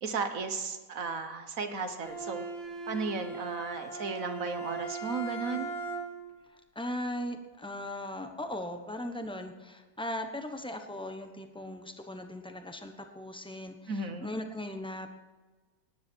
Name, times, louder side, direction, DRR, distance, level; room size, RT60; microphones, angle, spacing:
voice 1, 0.0-2.4 2.9-5.7 13.9-14.3, right 4 dB, 45° right, 8 dB, 1.4 m, -35 dB
Bowed string instrument, 2.0-6.4, right 3 dB, 70° left, 2.5 m, -38 dB
voice 2, 6.5-15.1, left 1 dB, 5° left, 5 dB, 0.5 m, -38 dB
18.5 x 10.5 x 4.5 m, 1.3 s
omnidirectional pair, 2.2 m